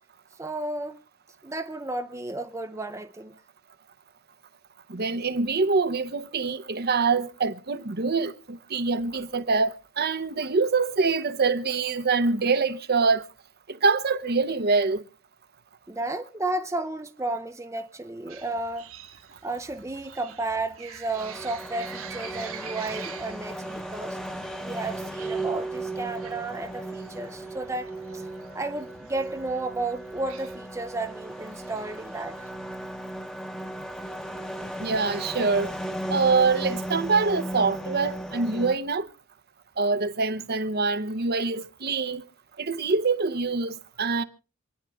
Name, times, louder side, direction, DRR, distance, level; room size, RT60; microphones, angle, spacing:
voice 1, 0.4-1.0 1.4-3.3 15.9-18.9 19.4-24.2 24.6-28.2 28.5-32.4, right 2 dB, 15° right, 0.6 m, -33 dB
voice 2, 4.9-13.3 13.7-15.0 34.8-35.7 36.1-39.1 39.8-42.2 42.6-44.2, right 4 dB, 45° right, 0.8 m, -25 dB
sound 1, 18.3-32.5, right 7 dB, 75° right, 1.8 m, -47 dB
sound 2, 21.2-38.8, right 1 dB, 5° left, 1.0 m, -36 dB
27.0 x 9.8 x 3.5 m
head